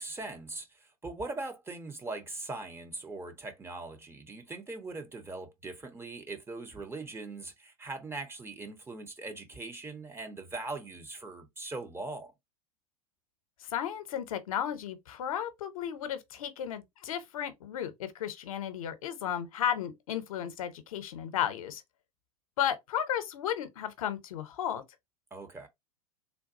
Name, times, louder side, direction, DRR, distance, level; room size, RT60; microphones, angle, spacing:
voice 1, 0.0-12.3 25.3-25.7, right 3 dB, 15° right, 0.6 m, -41 dB
voice 2, 13.6-21.8 22.6-24.8, left 9 dB, 65° left, 0.7 m, -34 dB
3.5 x 2.2 x 2.5 m
figure-of-eight pair, 90°, 19 cm